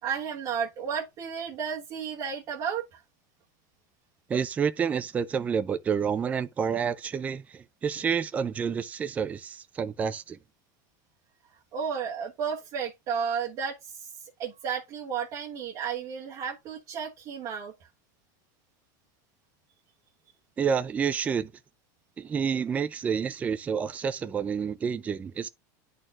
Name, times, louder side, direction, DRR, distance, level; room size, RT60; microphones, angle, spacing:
voice 1, 0.0-3.0 11.7-14.1 14.4-17.7, right 7 dB, 40° right, 1.3 m, -33 dB
voice 2, 4.3-10.4 20.6-21.5 22.2-25.5, right 7 dB, 15° right, 0.4 m, -29 dB
11.0 x 4.3 x 2.4 m
supercardioid pair, 160°, 10 cm